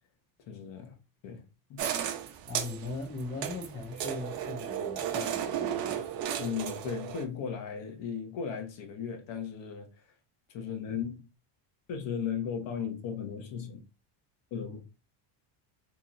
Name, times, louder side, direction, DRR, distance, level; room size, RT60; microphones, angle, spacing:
voice 1, 0.5-1.0 1.2-1.8 6.4-9.9 10.5-11.3 11.9-13.8 14.5-14.8, left 7 dB, 60° left, 1.1 m, -36 dB
sound 1, 1.8-7.3, right 9 dB, 45° right, 0.6 m, -34 dB
voice 2, 2.5-6.0 14.6-14.8, left 3 dB, 20° left, 0.7 m, -40 dB
3.0 x 2.8 x 3.8 m
cardioid pair, 165°, 50 cm